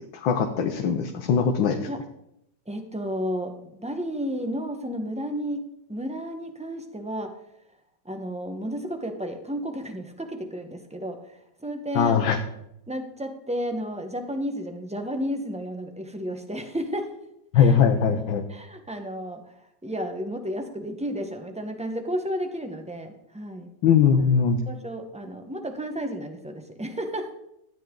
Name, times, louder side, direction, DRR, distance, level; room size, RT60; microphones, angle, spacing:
voice 1, 0.1-1.9 11.9-12.4 17.5-18.4 23.8-24.6, left 7 dB, 75° left, 4 dB, 1.6 m, -20 dB
voice 2, 2.7-5.6 5.9-7.3 8.0-12.2 12.9-17.1 17.5-17.8 18.1-18.2 18.5-19.4 19.8-23.7 24.7-27.4, equal, 5° right, 5 dB, 0.7 m, -32 dB
13.5 x 9.2 x 3.8 m, 0.79 s
omnidirectional pair, 2.1 m